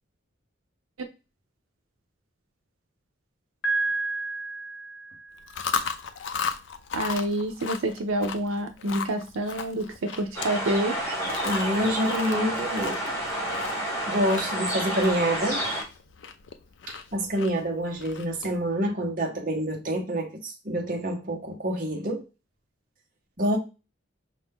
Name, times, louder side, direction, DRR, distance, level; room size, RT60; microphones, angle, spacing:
Piano, 3.6-5.6, right 3 dB, 85° left, 0.9 m, -30 dB
Chewing mastication, 5.4-18.6, left 6 dB, 65° left, 0.5 m, -36 dB
voice 1, 6.9-11.0, right 1 dB, 90° right, 0.6 m, -28 dB
sound 1, 10.3-15.8, right 1 dB, 15° left, 2.0 m, -30 dB
voice 2, 11.4-13.0 14.1-15.6 16.9-22.2 23.4-23.6, equal, 40° right, 0.9 m, -27 dB
5.4 x 2.6 x 3.5 m
head